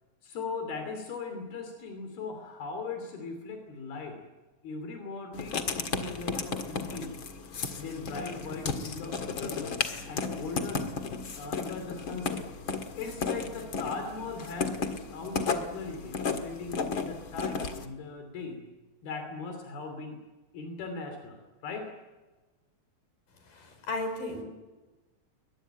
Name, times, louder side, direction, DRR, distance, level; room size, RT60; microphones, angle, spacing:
voice 1, 0.2-4.2 4.6-7.2 7.8-9.8 10.1-10.9 11.4-12.5 12.9-18.6 19.0-20.2 20.5-21.9, left 4 dB, 85° left, 5 dB, 4.9 m, -39 dB
Writing, 5.3-17.9, left 5 dB, 45° left, 2.0 m, -34 dB
voice 2, 23.5-24.4, left 2 dB, 60° left, 6 dB, 6.2 m, -34 dB
22.5 x 21.0 x 9.1 m, 1.2 s
omnidirectional pair, 4.3 m